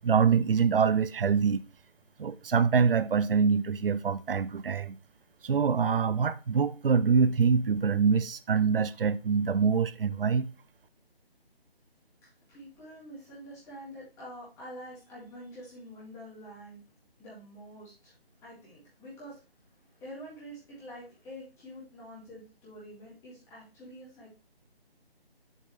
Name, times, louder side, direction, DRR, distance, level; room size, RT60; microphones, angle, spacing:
voice 1, 0.0-1.6 2.2-5.0 5.4-10.5, right 6 dB, 65° right, 0.6 m, -25 dB
voice 2, 12.2-16.8 17.2-18.1 18.4-24.3, equal, 10° left, 3.5 m, -47 dB
7.3 x 6.2 x 3.3 m
figure-of-eight pair, 155°, 31 cm